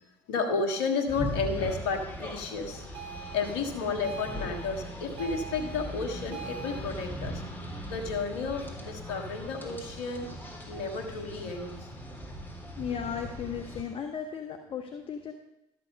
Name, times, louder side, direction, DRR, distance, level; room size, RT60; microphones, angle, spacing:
voice 1, 0.3-2.9 3.3-7.4 7.9-10.3 10.7-11.9, left 4 dB, 75° left, 5 dB, 1.6 m, -32 dB
sound 1, 1.1-13.8, equal, 15° left, 3.4 m, -40 dB
sound 2, 2.9-6.8, right 7 dB, 55° right, 2.9 m, -43 dB
voice 2, 12.8-15.3, left 7 dB, 45° left, 5 dB, 1.2 m, -35 dB
13.0 x 7.5 x 5.3 m, 0.89 s
hypercardioid pair, 60°, 13 cm